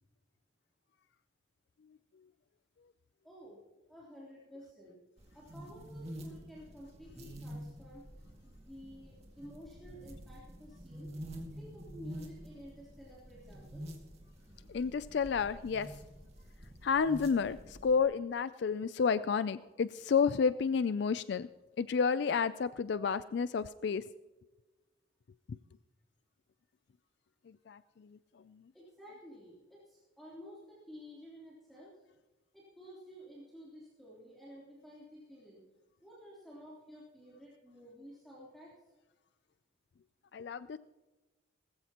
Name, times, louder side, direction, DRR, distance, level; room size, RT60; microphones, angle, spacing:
voice 1, 3.2-3.6 3.9-5.0 5.3-8.0 8.4-11.1 11.5-13.9 28.7-32.0 32.5-35.6 36.0-38.9, equal, ahead, -8 dB, 3.3 m, -52 dB
sound 1, 5.2-18.0, equal, 30° right, 2.1 m, -48 dB
voice 2, 14.7-16.0 16.8-21.5 21.8-24.0 25.5-25.6 27.5-28.6 40.3-40.8, left 6 dB, 60° left, 14 dB, 0.3 m, -31 dB
19.0 x 15.0 x 2.9 m, 1.2 s
head